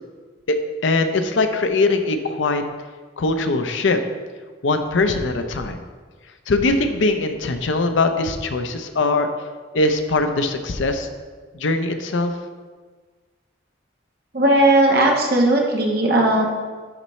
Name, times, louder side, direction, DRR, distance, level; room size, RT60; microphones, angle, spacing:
voice 1, 0.8-2.6 3.2-4.0 4.6-5.8 6.5-9.3 9.7-11.1 11.5-12.3, left 3 dB, 80° left, 7 dB, 0.6 m, -21 dB
voice 2, 14.3-16.4, right 1 dB, 50° right, 0 dB, 1.1 m, -17 dB
11.0 x 4.2 x 3.1 m, 1.4 s
head